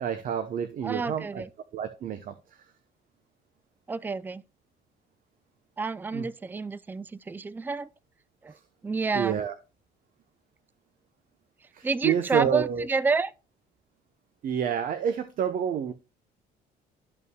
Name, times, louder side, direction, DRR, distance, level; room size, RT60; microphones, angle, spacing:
voice 1, 0.0-1.4 1.7-2.3 6.1-6.2 9.1-9.5 11.7-12.9 14.4-15.9, right 8 dB, 55° right, 0.9 m, -28 dB
voice 2, 0.8-1.5 3.9-4.4 5.8-7.9 8.4-8.6 8.8-9.4 11.8-13.3, right 4 dB, 10° right, 0.4 m, -29 dB
13.0 x 5.6 x 2.2 m
cardioid pair, 110°, 17 cm